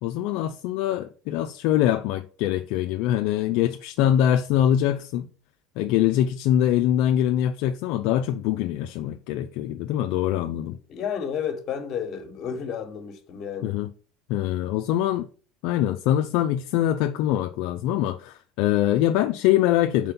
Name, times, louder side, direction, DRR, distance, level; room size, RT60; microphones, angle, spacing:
voice 1, 0.0-5.3 5.8-10.8 13.6-13.9 14.3-15.3 15.6-20.1, left 11 dB, 70° left, 0.4 m, -23 dB
voice 2, 10.9-13.8, left 7 dB, 50° left, 1.3 m, -31 dB
4.3 x 4.2 x 5.4 m
supercardioid pair, 110°, 0 cm